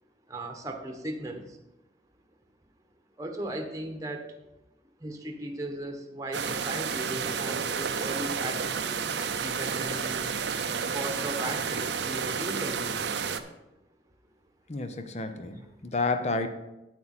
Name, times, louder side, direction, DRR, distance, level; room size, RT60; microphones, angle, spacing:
voice 1, 0.3-1.6 3.2-4.3 5.0-8.9 9.4-10.3 10.9-13.1, right 1 dB, 20° right, 3 dB, 1.1 m, -37 dB
sound 1, 6.3-13.4, right 6 dB, 75° right, 0.7 m, -31 dB
voice 2, 14.7-16.5, left 3 dB, 40° left, 8 dB, 0.8 m, -30 dB
9.0 x 8.8 x 4.3 m, 0.95 s
head